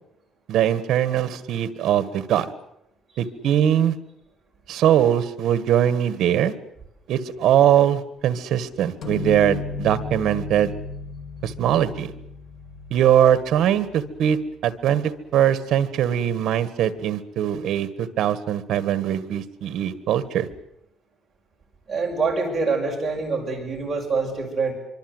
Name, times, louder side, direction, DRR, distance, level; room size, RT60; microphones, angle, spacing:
voice 1, 0.5-2.5 3.2-3.9 4.7-6.5 7.1-10.7 11.4-12.1 12.9-20.5, right 10 dB, 60° right, 14 dB, 1.7 m, -21 dB
sound 1, 9.0-14.5, left 4 dB, 60° left, 2.5 m, -35 dB
voice 2, 21.9-24.7, right 4 dB, 15° right, -1 dB, 6.0 m, -25 dB
25.0 x 24.5 x 8.0 m, 0.83 s
cardioid pair, 170°, 0 cm